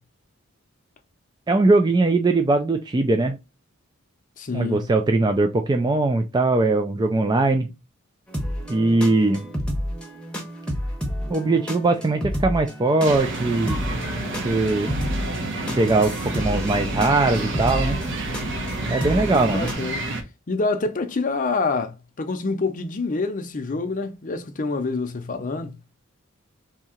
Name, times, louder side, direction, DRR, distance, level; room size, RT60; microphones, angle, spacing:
voice 1, 1.5-3.4 4.5-7.7 8.7-9.5 11.3-13.8 14.4-15.0 15.8-18.0 18.9-19.7, right 2 dB, 20° right, 0.3 m, -20 dB
voice 2, 4.4-4.9 19.2-20.0 20.5-25.8, left 3 dB, 40° left, 0.6 m, -27 dB
sound 1, 8.3-19.7, equal, 5° left, 0.8 m, -31 dB
sound 2, 13.1-20.2, right 2 dB, 60° right, 0.9 m, -29 dB
3.6 x 2.8 x 4.2 m
head